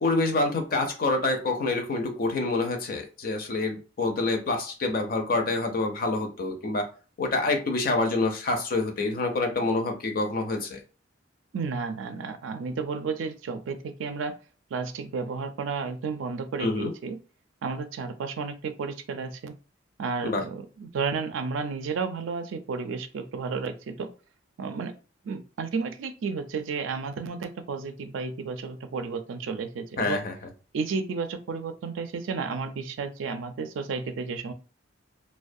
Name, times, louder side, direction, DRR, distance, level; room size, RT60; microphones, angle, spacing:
voice 1, 0.0-6.9 7.2-10.8 16.6-16.9 20.2-20.4 30.0-30.3, left 2 dB, 45° left, 4 dB, 0.4 m, -27 dB
voice 2, 11.5-14.3 14.7-17.2 17.6-19.5 20.0-24.1 24.6-24.9 25.2-30.2 30.7-34.5, right 5 dB, 75° right, 8 dB, 0.3 m, -32 dB
2.3 x 2.1 x 2.6 m, 0.36 s
head